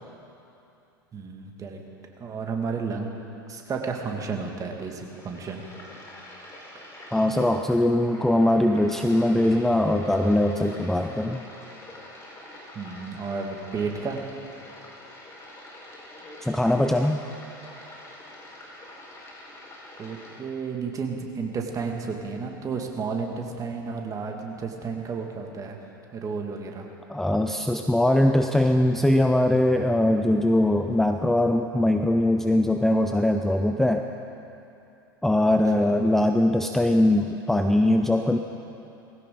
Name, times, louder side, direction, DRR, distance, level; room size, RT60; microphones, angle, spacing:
voice 1, 1.1-1.8 2.2-3.1 3.5-5.6 6.7-6.9 12.7-14.2 20.0-25.8 26.1-26.9 35.8-35.9, right 5 dB, 30° right, 2 dB, 2.2 m, -32 dB
sound 1, 4.8-20.4, left 1 dB, 25° left, 4.8 m, -46 dB
voice 2, 7.1-11.4 16.4-17.2 27.1-34.0 35.2-38.4, left 1 dB, 5° left, 5 dB, 0.6 m, -21 dB
20.0 x 16.5 x 3.9 m, 2.8 s
hypercardioid pair, 80°, 12 cm